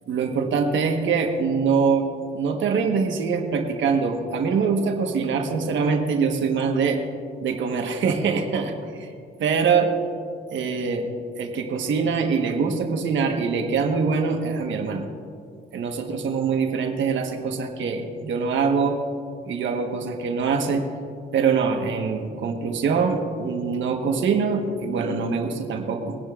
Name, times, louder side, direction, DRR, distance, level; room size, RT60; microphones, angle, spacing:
voice 1, 0.1-2.1 2.3-7.0 7.4-9.1 9.4-9.9 10.5-11.1 11.4-15.1 15.7-19.0 19.5-20.9 21.3-26.2, right 5 dB, 70° right, 3 dB, 1.4 m, -24 dB
21.5 x 10.0 x 2.5 m, 2.3 s
cardioid pair, 90°, 20 cm